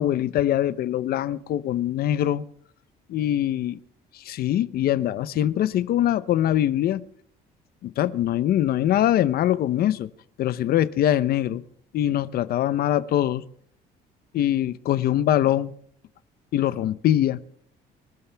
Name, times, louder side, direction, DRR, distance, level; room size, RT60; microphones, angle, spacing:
voice 1, 0.0-2.4 3.1-3.8 4.1-7.0 7.8-10.1 10.4-11.6 11.9-13.4 14.3-15.7 16.5-17.4, left 12 dB, 65° left, 0.8 m, -23 dB
26.0 x 12.5 x 3.5 m
cardioid pair, 110°, 17 cm